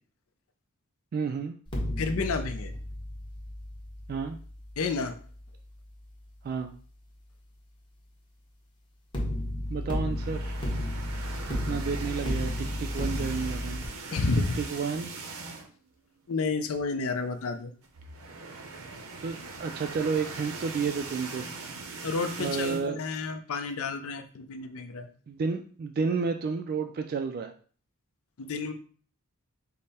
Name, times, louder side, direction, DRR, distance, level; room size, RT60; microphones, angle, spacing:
voice 1, 1.1-1.6 4.1-4.4 6.4-6.7 9.7-10.5 11.5-13.8 14.3-15.1 19.2-21.5 22.4-23.0 25.3-27.5, right 5 dB, 45° right, 6 dB, 0.3 m, -31 dB
sound 1, 1.7-6.7 9.1-13.8, left 1 dB, 20° left, 1.0 m, -34 dB
voice 2, 2.0-2.7 4.8-5.2 14.1-14.6 16.3-17.7 22.0-25.1 28.4-28.7, left 4 dB, 70° left, 7 dB, 0.5 m, -30 dB
sound 2, 10.1-15.9 16.2-16.4 16.7-16.8 17.8-22.9, right 4 dB, 75° right, 0.7 m, -41 dB
5.2 x 2.1 x 4.1 m, 0.43 s
head